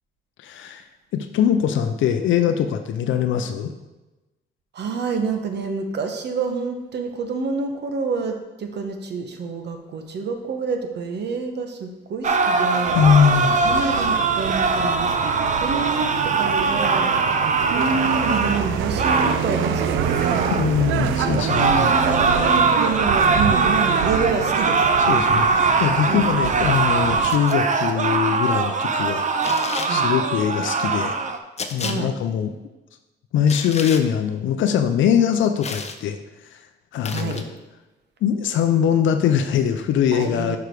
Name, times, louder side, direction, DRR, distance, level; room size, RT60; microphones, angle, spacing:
voice 1, 0.4-0.9 1.1-3.7 12.9-13.5 20.5-21.9 25.1-29.3 29.9-31.2 31.7-32.5 33.3-36.6 36.9-37.4 38.2-40.6, left 8 dB, 75° left, 7 dB, 0.5 m, -21 dB
voice 2, 4.7-13.0 13.6-17.4 17.7-20.5 20.9-25.4 26.1-26.3 29.9-30.1 31.8-32.1 37.1-37.5 40.1-40.6, right 4 dB, 60° right, 5 dB, 1.1 m, -28 dB
sound 1, 12.2-20.7 21.4-31.4, right 4 dB, 40° right, 0.6 m, -21 dB
sound 2, 12.9-27.4, right 8 dB, 90° right, 0.5 m, -27 dB
sound 3, 27.3-27.6 29.4-29.9 31.6-32.0 33.5-34.0 35.6-36.0 37.0-37.4, left 5 dB, 35° left, 0.7 m, -31 dB
6.8 x 4.8 x 4.7 m, 1.1 s
cardioid pair, 90°, 20 cm